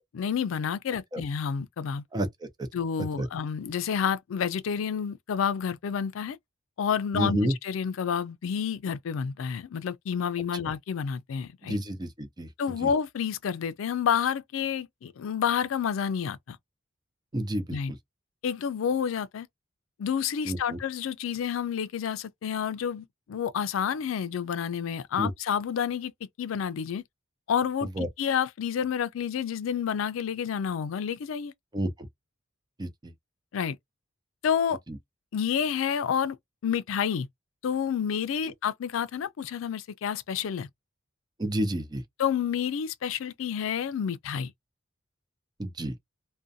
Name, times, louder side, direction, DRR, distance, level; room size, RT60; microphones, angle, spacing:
voice 1, 0.1-2.0 2.7-6.4 6.8-11.8 12.6-16.6 17.7-17.9 18.4-19.5 20.0-26.1 26.4-27.0 27.5-31.5 33.5-33.8 34.4-34.8 35.3-36.4 36.6-37.3 37.6-40.7 42.2-44.5, left 7 dB, 85° left, 0.4 m, -29 dB
voice 2, 7.1-7.5 11.6-12.5 12.8-12.9 17.3-18.0 20.5-20.8 25.2-25.3 28.0-28.1 31.7-31.9 32.8-33.1 34.9-35.0 38.4-38.5 41.4-42.0 45.6-45.9, right 1 dB, 20° right, 0.5 m, -30 dB
2.5 x 2.1 x 2.6 m
head